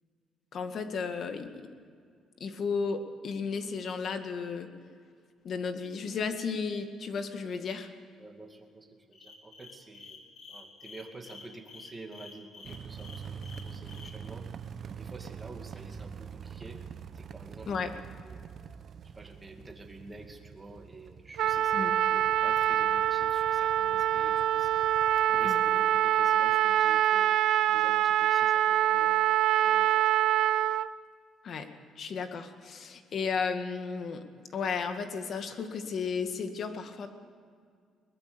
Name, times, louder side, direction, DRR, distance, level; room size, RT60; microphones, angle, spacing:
voice 1, 0.5-1.7 2.4-4.7 5.4-7.9 17.7-17.9 21.7-21.9 25.4-25.6 31.4-31.7 32.0-34.2 34.5-37.1, left 5 dB, 50° left, 7 dB, 2.0 m, -34 dB
voice 2, 8.2-10.2 10.5-14.5 14.9-16.8 17.1-17.7 18.2-18.5 19.0-27.4 27.7-30.1, right 2 dB, 15° right, 3 dB, 2.4 m, -49 dB
sound 1, 9.1-14.1, left 4 dB, 65° left, 4.1 m, -49 dB
sound 2, 12.6-25.9, right 7 dB, 45° right, 0.9 m, -45 dB
Trumpet, 21.4-30.9, right 12 dB, 70° right, 0.6 m, -25 dB
22.0 x 20.0 x 6.9 m, 2.1 s
cardioid pair, 140°, 0 cm